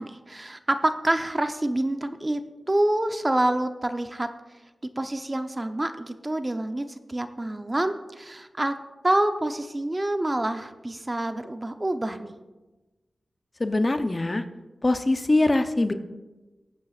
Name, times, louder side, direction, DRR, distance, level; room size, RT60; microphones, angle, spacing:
voice 1, 0.0-2.4 2.7-4.3 5.0-8.7 9.0-12.3, right 1 dB, 30° right, 8 dB, 0.8 m, -27 dB
voice 2, 13.6-14.4 14.8-15.9, left 2 dB, 40° left, 8 dB, 0.8 m, -22 dB
18.0 x 8.7 x 2.5 m, 1.1 s
cardioid pair, 45°, 0 cm